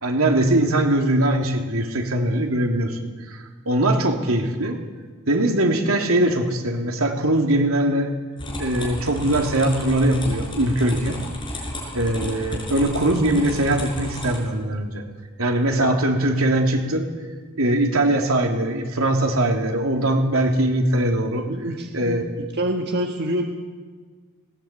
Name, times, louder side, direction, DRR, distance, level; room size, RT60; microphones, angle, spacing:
voice 1, 0.0-3.0 3.3-4.8 5.3-8.1 8.6-11.2 11.9-15.0 15.4-17.1 17.6-21.5 21.9-22.2, right 1 dB, 80° right, 3 dB, 3.1 m, -21 dB
sound 1, 8.4-14.4, left 1 dB, 25° left, 6.0 m, -32 dB
voice 2, 21.5-22.2 22.6-23.4, right 1 dB, 50° right, 3 dB, 1.7 m, -26 dB
19.5 x 19.0 x 8.8 m, 1.5 s
head